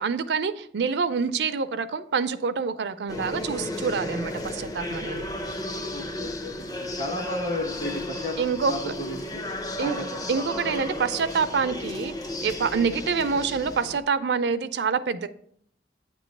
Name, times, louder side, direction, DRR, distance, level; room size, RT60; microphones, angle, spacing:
voice 1, 0.0-5.3 8.4-8.9 9.8-10.0 10.3-12.1 12.4-15.3, right 5 dB, 70° right, 12 dB, 0.4 m, -26 dB
sound 1, 3.1-14.0, left 1 dB, 20° left, 0.5 m, -34 dB
voice 2, 5.9-8.4 8.7-9.5 9.8-10.2, left 1 dB, 40° left, 2 dB, 1.4 m, -33 dB
9.0 x 3.0 x 6.5 m, 0.65 s
head